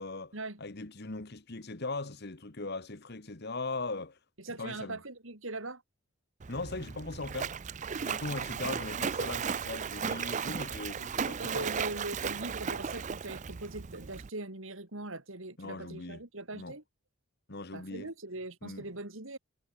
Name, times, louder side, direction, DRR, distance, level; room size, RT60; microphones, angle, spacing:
voice 1, 0.0-0.3 0.6-4.2 4.6-5.0 6.5-7.5 8.0-11.7 15.6-16.2 16.5-16.7 17.5-18.1 18.6-18.8, left 3 dB, 50° left, 1.4 m, -39 dB
voice 2, 4.4-5.8 11.4-16.8 17.7-19.4, right 2 dB, 65° right, 3.4 m, -41 dB
Splash splatter, 6.4-14.3, right 6 dB, 35° right, 0.4 m, -35 dB
head